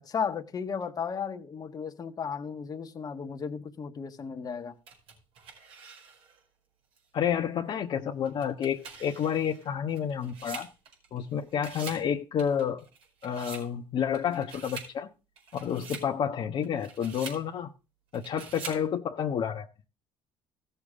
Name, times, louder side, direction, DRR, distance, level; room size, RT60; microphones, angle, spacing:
voice 1, 0.1-4.7, left 6 dB, 40° left, 1.6 m, -34 dB
sound 1, 4.9-6.4 7.0-7.1 8.2-11.2 11.5-12.1 12.4-13.7 14.1-14.9 15.4-16.1 16.6-17.4 18.1-18.8, right 5 dB, 65° right, 4.9 m, -45 dB
voice 2, 7.1-10.7 11.1-12.8 13.2-15.1 15.5-17.7 18.1-19.6, left 8 dB, 55° left, 1.2 m, -30 dB
16.0 x 6.9 x 3.7 m
supercardioid pair, 75°, 10 cm